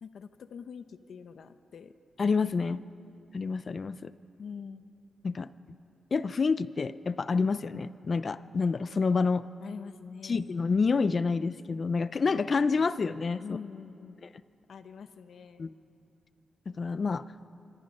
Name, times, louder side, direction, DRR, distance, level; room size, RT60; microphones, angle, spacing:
voice 1, 0.0-1.9 4.4-4.9 9.6-10.6 13.4-14.2 14.7-15.7, left 6 dB, 60° left, 10 dB, 0.9 m, -44 dB
voice 2, 2.2-2.8 3.3-4.1 5.2-5.5 6.1-9.5 10.2-13.4 15.6-15.7 16.7-17.3, left 4 dB, 35° left, 15 dB, 0.5 m, -28 dB
26.0 x 24.5 x 5.5 m, 2.6 s
wide cardioid pair, 175°, 0 cm